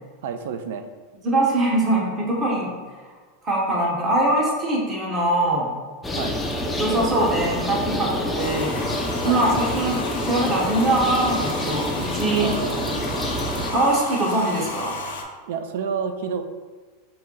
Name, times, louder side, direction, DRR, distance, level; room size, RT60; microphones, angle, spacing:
voice 1, 0.2-0.8 6.1-6.4 9.2-9.4 12.4-13.1 15.5-16.4, right 6 dB, 65° right, 8 dB, 0.3 m, -29 dB
voice 2, 1.2-2.7 3.4-5.7 6.8-8.7 9.2-12.5 13.7-14.9, right 1 dB, 20° right, -3 dB, 0.8 m, -22 dB
sound 1, 6.0-13.7, left 1 dB, 5° left, 0.4 m, -27 dB
Domestic sounds home sounds, 8.4-15.2, left 2 dB, 85° left, 0.6 m, -34 dB
4.2 x 2.6 x 3.7 m, 1.4 s
supercardioid pair, 170°, 0 cm